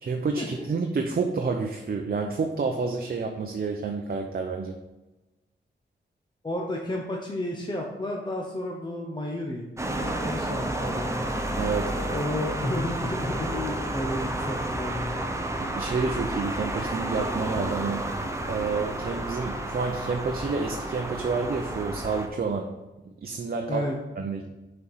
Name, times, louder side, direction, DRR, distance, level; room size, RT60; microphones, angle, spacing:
voice 1, 0.0-4.8 11.6-11.9 15.6-18.1 18.5-22.7 23.0-23.9 24.2-24.5, right 4 dB, 50° right, 3 dB, 0.7 m, -29 dB
voice 2, 6.4-11.3 11.8-15.2 23.7-24.0, left 1 dB, 25° left, 0 dB, 0.8 m, -32 dB
sound 1, 9.8-22.3, right 1 dB, 15° right, 0.7 m, -31 dB
6.2 x 4.4 x 5.7 m, 1.1 s
wide cardioid pair, 105°, 19 cm